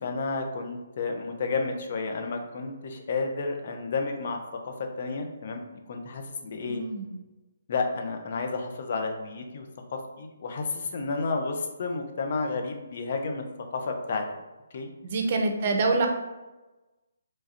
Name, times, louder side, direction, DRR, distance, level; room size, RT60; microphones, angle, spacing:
voice 1, 0.0-4.4 4.6-5.6 5.9-6.8 7.7-13.4 13.7-14.3 14.7-14.9, left 4 dB, 50° left, 4 dB, 0.5 m, -31 dB
voice 2, 6.6-7.1 15.0-16.1, right 3 dB, 45° right, 4 dB, 0.6 m, -26 dB
3.1 x 2.3 x 4.1 m, 1.1 s
figure-of-eight pair, 140°, 0 cm